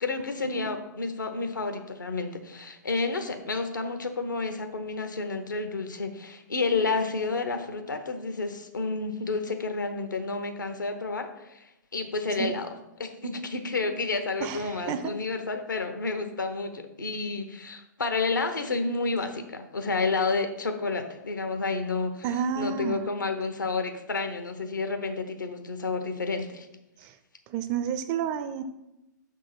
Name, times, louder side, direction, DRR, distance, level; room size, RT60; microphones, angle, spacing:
voice 1, 0.0-11.7 11.9-22.3 22.5-26.7, left 3 dB, 75° left, 6 dB, 0.9 m, -30 dB
voice 2, 14.4-15.1 22.2-23.0 27.0-27.1 27.5-28.6, right 7 dB, 25° right, 10 dB, 0.4 m, -30 dB
6.4 x 3.7 x 5.7 m, 0.91 s
figure-of-eight pair, 115°, 10 cm